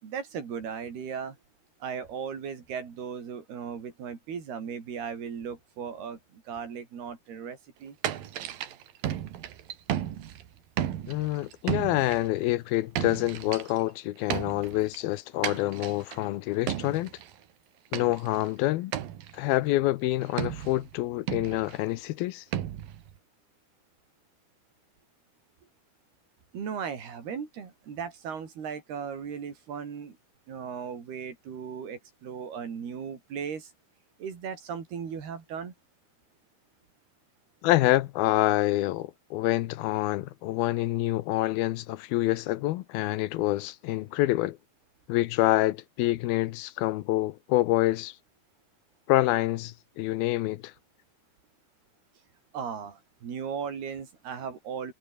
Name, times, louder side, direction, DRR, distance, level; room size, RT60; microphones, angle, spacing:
voice 1, 0.0-1.4 1.8-8.0 26.5-30.2 30.5-33.7 34.2-35.7 52.5-54.9, right 7 dB, 90° right, 6.1 m, -37 dB
sound 1, 8.0-10.5 10.8-12.3 12.7-13.8 14.3-15.0 15.4-16.3 16.7-17.3 17.9-18.5 18.9-19.4 20.4-20.9 21.3-21.8 22.5-23.2, right 11 dB, 70° right, 3.4 m, -34 dB
voice 2, 11.1-17.1 17.9-18.9 19.3-22.4 37.6-44.6 45.1-48.1 49.1-50.7, left 16 dB, 80° left, 2.7 m, -27 dB
omnidirectional pair, 4.4 m